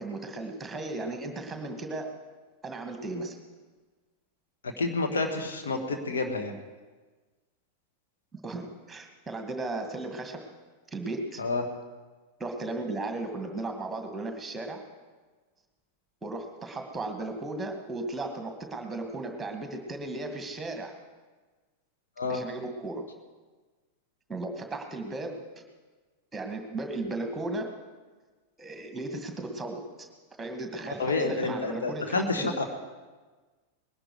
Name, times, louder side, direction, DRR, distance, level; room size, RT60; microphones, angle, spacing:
voice 1, 0.0-2.1 2.6-3.4 8.3-10.4 10.9-11.4 12.4-14.8 16.2-20.9 22.3-23.1 24.3-25.4 26.3-27.7 28.6-30.1 30.4-32.5, right 2 dB, 10° right, 4 dB, 2.0 m, -35 dB
voice 2, 4.6-6.5 11.4-11.7 22.2-22.4 30.9-32.7, left 3 dB, 65° left, 4 dB, 1.6 m, -29 dB
20.5 x 11.5 x 4.9 m, 1.3 s
figure-of-eight pair, 90°, 0 cm